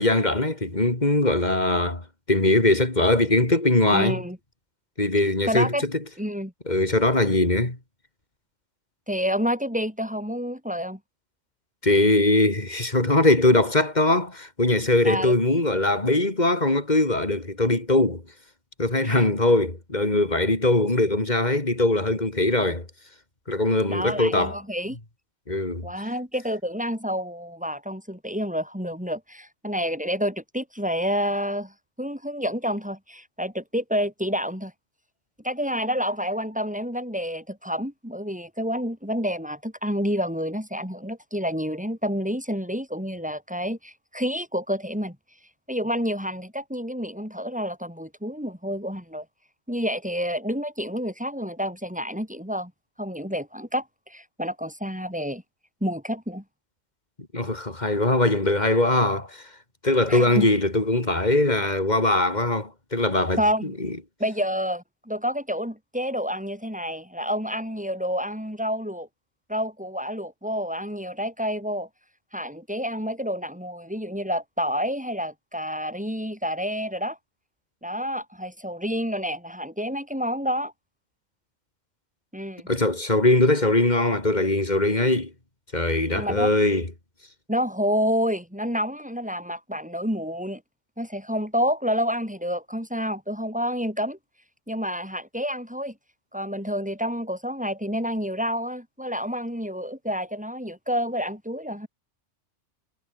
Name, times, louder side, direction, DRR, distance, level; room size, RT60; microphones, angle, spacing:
voice 1, 0.0-2.0 2.3-4.2 5.0-5.9 6.7-7.8 11.8-18.2 18.8-22.9 23.5-24.6 25.5-25.9 57.3-59.4 59.8-64.0 82.7-85.3 85.7-86.9, left 2 dB, 35° left, 3.9 m, -21 dB
voice 2, 3.9-4.4 5.5-5.8 6.2-6.5 9.1-11.0 15.0-15.4 19.0-19.3 23.9-25.0 25.8-31.7 32.0-34.7 35.4-45.2 45.7-49.2 49.7-52.7 53.0-55.4 55.8-56.4 60.1-60.5 63.4-63.7 64.2-69.1 69.5-71.9 72.3-77.2 77.8-80.7 82.3-82.7 86.2-86.5 87.5-90.6 91.0-94.2 94.7-95.9 96.3-101.9, equal, 5° right, 7.9 m, -29 dB
omnidirectional pair, 1.2 m